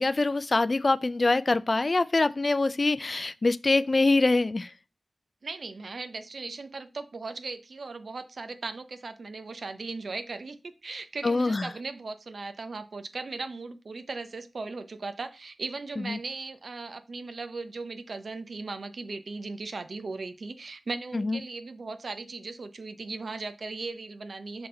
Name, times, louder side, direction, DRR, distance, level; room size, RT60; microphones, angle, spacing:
voice 1, 0.0-4.7 11.2-11.7 16.1-16.2 21.1-21.4, left 3 dB, 45° left, 0.4 m, -24 dB
voice 2, 5.4-24.7, right 3 dB, 75° right, 0.7 m, -38 dB
6.0 x 3.5 x 5.4 m
wide cardioid pair, 65°, 0 cm